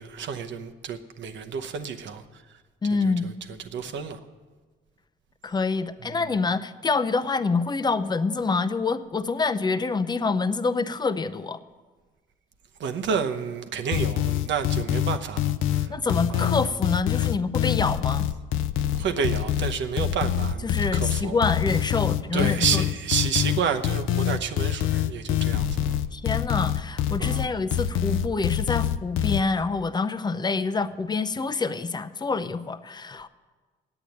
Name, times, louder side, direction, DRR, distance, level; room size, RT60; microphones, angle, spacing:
voice 1, 0.0-2.2 3.0-3.3 3.7-4.2 6.1-6.2 12.8-15.5 15.7-15.9 16.3-16.5 18.9-21.4 22.3-26.0 27.2-27.5, right 6 dB, 65° right, 7 dB, 0.9 m, -30 dB
voice 2, 2.8-3.3 5.4-11.6 15.9-18.3 20.6-22.9 26.1-33.3, left 4 dB, 20° left, 12 dB, 0.6 m, -26 dB
sound 1, 13.9-29.4, left 11 dB, 90° left, 0.5 m, -25 dB
8.9 x 8.4 x 9.3 m, 1.4 s
cardioid pair, 90°, 20 cm